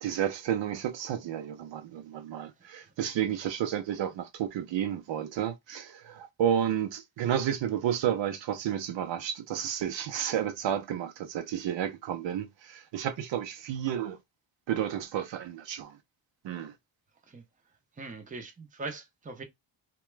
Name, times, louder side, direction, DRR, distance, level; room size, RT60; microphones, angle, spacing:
voice 1, 0.0-14.2 14.7-16.0 16.4-16.7, right 10 dB, 60° right, 0.6 m, -31 dB
voice 2, 18.0-19.4, right 3 dB, 15° right, 0.6 m, -41 dB
2.9 x 2.2 x 3.1 m
cardioid pair, 130°, 50 cm